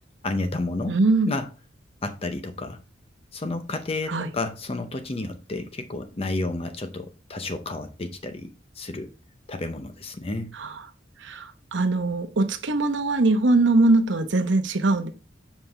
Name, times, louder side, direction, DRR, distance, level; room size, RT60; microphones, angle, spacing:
voice 1, 0.2-0.9 1.3-1.5 2.0-2.8 3.3-8.5 8.8-9.1 9.5-10.5, left 2 dB, 30° left, 0.6 m, -31 dB
voice 2, 0.9-1.3 4.1-4.3 10.5-10.7 11.2-15.1, right 2 dB, 80° right, 0.9 m, -22 dB
7.4 x 5.2 x 3.4 m
head